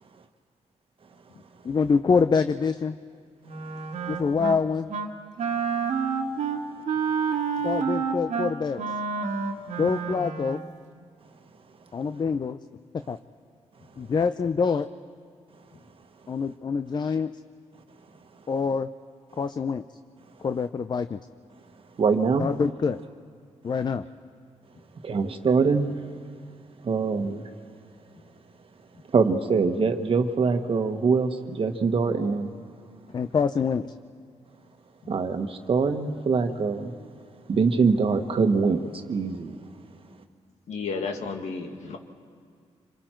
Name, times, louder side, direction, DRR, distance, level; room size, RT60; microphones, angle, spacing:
voice 1, 1.6-3.0 4.1-4.9 7.6-8.8 9.8-10.6 11.9-12.6 13.1-13.2 14.0-14.9 16.3-17.3 18.5-18.9 19.4-19.8 20.4-21.2 22.4-23.0 23.6-24.0 33.1-33.9, left 5 dB, 40° left, 10 dB, 0.5 m, -25 dB
Wind instrument woodwind instrument, 3.4-4.6 4.9-5.1 5.4-10.7, right 5 dB, 80° right, 1.7 m, -29 dB
voice 2, 22.0-22.5 25.0-25.9 26.8-27.5 29.1-32.5 35.1-36.9 37.5-39.6, right 5 dB, 50° right, 7 dB, 1.4 m, -23 dB
voice 3, 40.7-42.0, left 4 dB, 75° left, 3 dB, 2.0 m, -32 dB
27.0 x 26.5 x 4.5 m, 2.1 s
cardioid pair, 100°, 12 cm